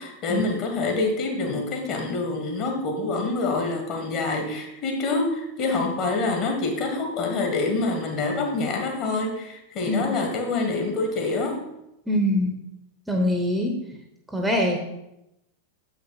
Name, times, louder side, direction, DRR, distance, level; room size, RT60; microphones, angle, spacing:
voice 1, 0.0-11.6, left 3 dB, 40° left, 3 dB, 1.7 m, -26 dB
voice 2, 12.1-12.5 13.1-13.7 14.3-14.8, left 1 dB, 5° right, 2 dB, 1.0 m, -23 dB
7.3 x 5.6 x 4.0 m, 0.86 s
figure-of-eight pair, 90°, 0 cm